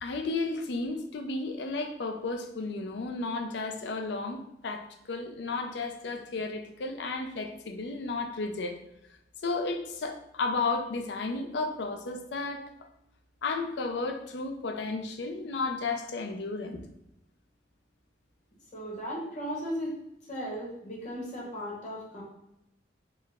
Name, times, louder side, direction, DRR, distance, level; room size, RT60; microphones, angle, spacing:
voice 1, 0.0-8.8 9.4-12.7 13.4-16.8, left 3 dB, 70° left, 5 dB, 0.4 m, -33 dB
voice 2, 18.7-20.0 20.3-22.2, equal, 40° left, -4 dB, 0.9 m, -36 dB
4.4 x 2.1 x 3.4 m, 0.84 s
head